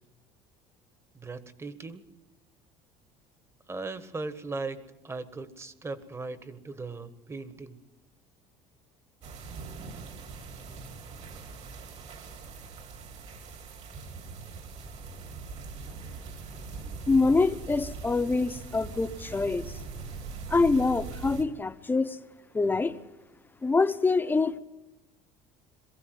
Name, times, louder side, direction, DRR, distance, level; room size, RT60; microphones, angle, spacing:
voice 1, 1.1-2.0 3.7-7.8, right 3 dB, 20° right, 1.5 m, -38 dB
sound 1, 9.2-21.4, right 4 dB, 50° right, 3.2 m, -41 dB
voice 2, 17.1-19.7 20.5-22.1 22.5-22.9 23.6-24.6, left 3 dB, 15° left, 1.0 m, -25 dB
22.5 x 15.5 x 9.4 m
cardioid pair, 120°, 14 cm